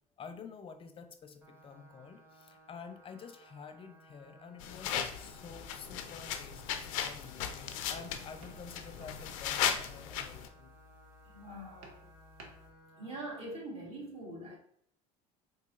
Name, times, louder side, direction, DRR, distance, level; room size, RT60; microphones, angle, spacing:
voice 1, 0.2-10.7, left 5 dB, 35° left, 0.5 m, -49 dB
sound 1, 1.4-13.3, right 2 dB, 15° right, 0.9 m, -60 dB
sound 2, 4.6-10.5, left 9 dB, 85° left, 0.4 m, -37 dB
sound 3, 7.5-12.7, equal, 80° right, 0.7 m, -57 dB
voice 2, 11.2-12.1 13.0-14.6, right 1 dB, 40° right, 1.4 m, -44 dB
3.9 x 2.7 x 2.4 m
supercardioid pair, 80°, 16 cm